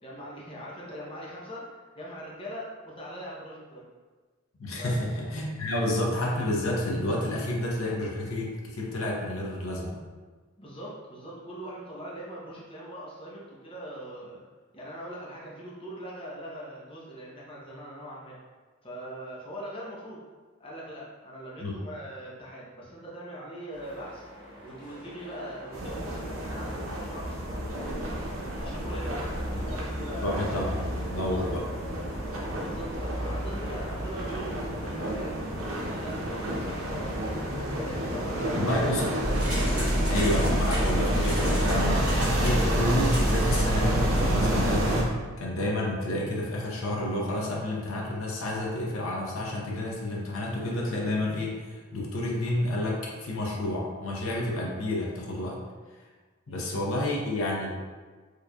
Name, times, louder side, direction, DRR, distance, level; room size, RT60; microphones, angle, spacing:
voice 1, 0.0-3.9 4.8-5.1 10.6-14.4 14.7-18.4 18.8-20.2 20.6-24.3 24.6-30.6 31.3-31.6 32.5-35.4 35.8-37.2 37.8-39.0 56.5-56.6, right 1 dB, 25° left, -6 dB, 0.8 m, -41 dB
voice 2, 4.6-10.0 21.6-21.7 29.5-29.6 30.2-31.6 38.5-39.0 40.1-55.6 56.5-57.7, left 1 dB, 85° left, -2 dB, 0.7 m, -30 dB
sound 1, 23.7-38.7, left 1 dB, 25° right, 1.1 m, -46 dB
sound 2, 25.7-45.0, right 1 dB, 85° right, 0.7 m, -30 dB
sound 3, 39.2-45.1, equal, 5° right, 1.4 m, -27 dB
4.6 x 3.2 x 2.3 m, 1.4 s
head